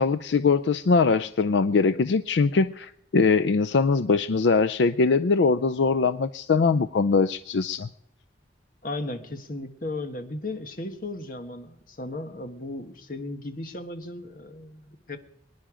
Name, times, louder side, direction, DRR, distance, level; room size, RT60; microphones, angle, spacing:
voice 1, 0.0-7.9, left 4 dB, 75° left, 13 dB, 0.5 m, -22 dB
voice 2, 8.8-15.2, left 2 dB, 50° left, 7 dB, 1.4 m, -35 dB
23.5 x 10.5 x 5.0 m, 0.77 s
head